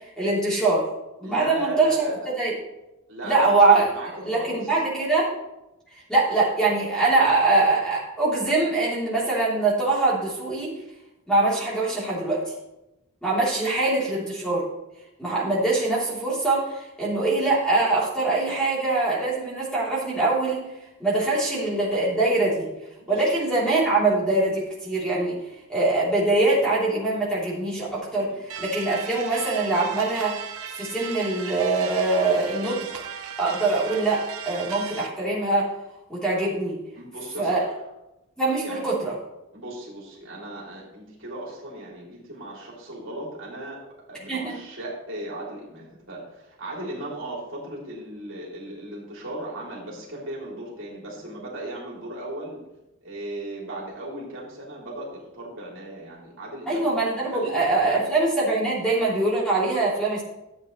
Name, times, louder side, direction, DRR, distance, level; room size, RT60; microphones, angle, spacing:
voice 1, 0.2-0.9 1.2-2.0 2.4-2.5 3.2-3.9 4.2-5.3 6.1-10.7 11.3-12.4 13.2-14.6 15.2-20.6 21.0-22.7 23.1-25.3 25.7-30.4 30.7-33.0 33.4-35.7 36.1-36.8 37.4-37.6 38.4-39.2 44.3-44.5 56.7-60.2, right 2 dB, 5° left, -7 dB, 3.2 m, -23 dB
voice 2, 1.2-2.3 3.1-4.7 23.0-23.4 28.3-28.4 37.0-37.8 38.6-38.8 39.5-43.8 44.1-52.6 53.0-58.2, right 1 dB, 60° right, -4 dB, 3.0 m, -37 dB
sound 1, 28.5-35.1, right 8 dB, 85° right, 0.8 m, -37 dB
13.5 x 8.0 x 3.2 m, 0.94 s
head